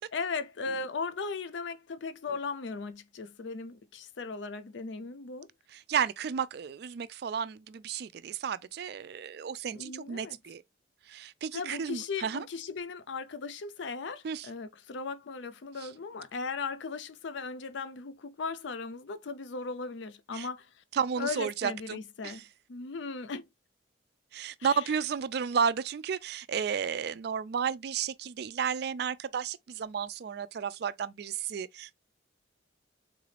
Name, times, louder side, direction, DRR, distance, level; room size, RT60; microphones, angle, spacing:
voice 1, 0.1-5.5 9.7-10.4 11.5-20.8 21.2-22.4 22.7-23.5 24.6-24.9, left 4 dB, 70° left, 0.5 m, -37 dB
voice 2, 5.7-10.6 11.1-12.4 14.2-14.5 15.8-15.9 20.3-20.5 20.9-22.0 22.2-22.4 24.3-32.0, right 7 dB, 55° right, 0.3 m, -32 dB
3.9 x 2.4 x 3.2 m
head